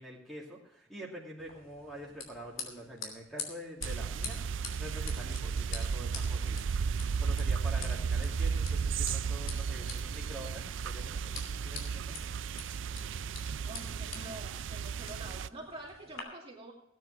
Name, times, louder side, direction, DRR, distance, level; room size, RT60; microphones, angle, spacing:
voice 1, 0.0-12.1, equal, ahead, -3 dB, 2.5 m, -46 dB
sound 1, 1.4-16.2, left 5 dB, 80° left, 2.9 m, -47 dB
sound 2, 3.8-15.5, right 6 dB, 65° right, 0.4 m, -34 dB
voice 2, 13.6-16.7, right 1 dB, 30° right, -2 dB, 2.4 m, -47 dB
17.0 x 9.3 x 4.6 m, 0.82 s
head